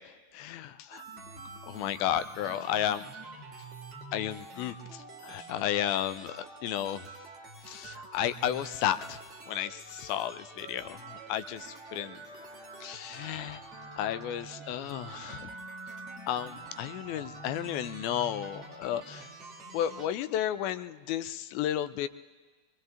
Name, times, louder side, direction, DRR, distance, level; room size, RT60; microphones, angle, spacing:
voice 1, 0.3-1.0 1.7-3.1 4.1-7.0 7.7-9.2 9.5-12.2 12.8-13.6 14.0-15.5 16.3-19.3 19.7-22.1, left 11 dB, 45° left, 12 dB, 0.5 m, -33 dB
sound 1, 0.9-20.1, right 3 dB, 35° right, 2.8 m, -46 dB
24.0 x 22.5 x 2.5 m, 1.4 s
figure-of-eight pair, 90°, 0 cm